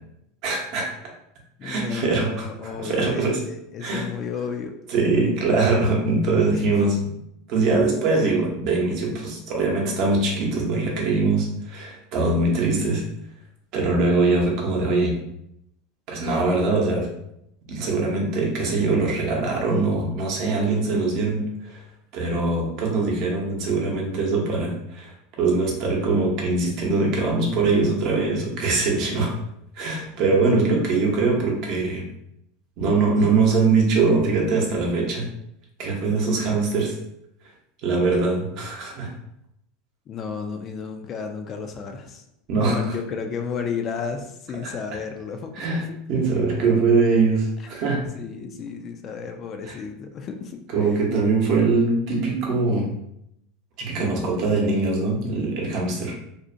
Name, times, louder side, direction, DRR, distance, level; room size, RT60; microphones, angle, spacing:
voice 1, 0.4-0.9 1.6-2.5 2.8-3.4 3.8-4.1 4.9-7.1 7.5-13.0 13.7-15.2 16.1-17.1 17.7-21.8 22.1-29.4 29.8-32.0 32.8-35.3 35.8-37.0 37.8-39.1 42.5-42.9 44.6-44.7 45.5-48.0 49.6-49.8 50.7-52.9 53.8-56.2, right 3 dB, 55° right, -1 dB, 0.7 m, -22 dB
voice 2, 1.6-4.7 6.5-6.9 40.1-42.2 42.6-45.7 47.6-47.8 48.1-50.9, left 6 dB, 35° left, 5 dB, 0.3 m, -33 dB
2.5 x 2.1 x 2.5 m, 0.78 s
supercardioid pair, 125°, 0 cm